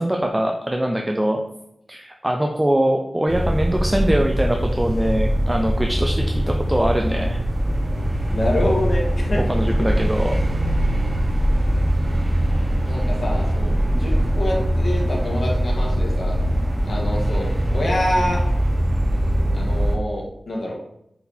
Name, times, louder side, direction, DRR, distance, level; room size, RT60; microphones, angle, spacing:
voice 1, 0.0-1.4 1.9-7.4 9.5-10.3, right 1 dB, 15° right, 2 dB, 0.5 m, -22 dB
sound 1, 3.3-20.0, equal, 35° right, 1.1 m, -21 dB
voice 2, 8.3-9.4 12.9-16.4 16.9-18.4 19.5-20.7, left 1 dB, 65° left, -2 dB, 1.8 m, -26 dB
5.7 x 4.1 x 4.3 m, 0.78 s
wide cardioid pair, 80°, 0 cm